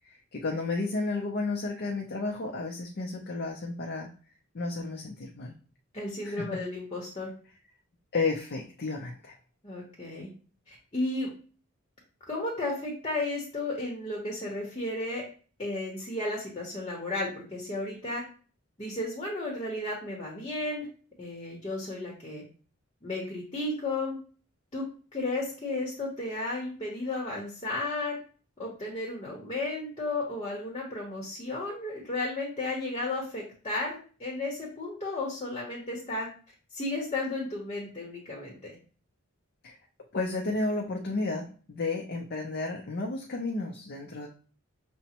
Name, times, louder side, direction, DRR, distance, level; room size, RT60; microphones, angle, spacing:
voice 1, 0.1-4.1 4.5-5.5 6.2-6.6 8.1-9.3 39.6-39.7 40.1-44.3, left 3 dB, 50° left, 1 dB, 0.5 m, -32 dB
voice 2, 5.9-7.3 9.6-10.3 10.7-11.3 12.3-15.2 15.6-18.2 18.8-20.9 21.2-22.4 23.0-24.2 24.7-24.8 25.1-28.2 28.6-36.3 36.7-38.7, left 2 dB, 25° left, -2 dB, 0.9 m, -33 dB
5.9 x 2.1 x 2.8 m, 0.40 s
head